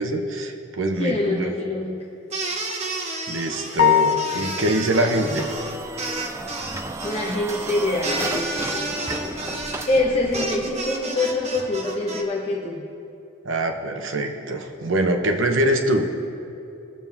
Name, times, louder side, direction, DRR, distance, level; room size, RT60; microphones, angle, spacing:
voice 1, 0.0-1.5 3.3-5.5 13.4-16.1, right 1 dB, 70° right, 4 dB, 1.1 m, -23 dB
voice 2, 0.9-2.0 7.0-12.8, left 2 dB, 30° left, -4 dB, 1.2 m, -25 dB
sound 1, 2.3-12.2, right 2 dB, 35° right, 1.2 m, -31 dB
sound 2, 3.8-4.8, left 10 dB, 75° left, 0.6 m, -20 dB
sound 3, 5.1-10.9, right 2 dB, 15° right, 0.4 m, -34 dB
20.5 x 7.3 x 3.6 m, 2.8 s
head